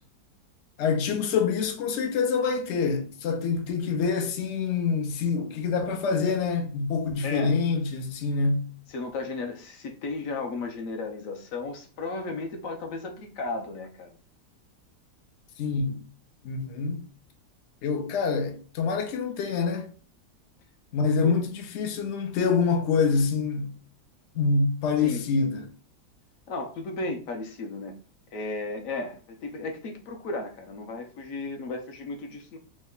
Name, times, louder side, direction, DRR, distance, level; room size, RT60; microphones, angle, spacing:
voice 1, 0.8-8.7 15.6-16.0 16.4-17.0 17.8-19.9 20.9-23.7 24.4-25.7, left 5 dB, 80° left, 0.6 m, -26 dB
voice 2, 7.2-7.5 8.9-14.2 21.2-21.4 25.0-25.2 26.5-27.9 28.3-32.6, left 3 dB, 65° left, 0.9 m, -34 dB
3.1 x 2.1 x 3.6 m
omnidirectional pair, 1.8 m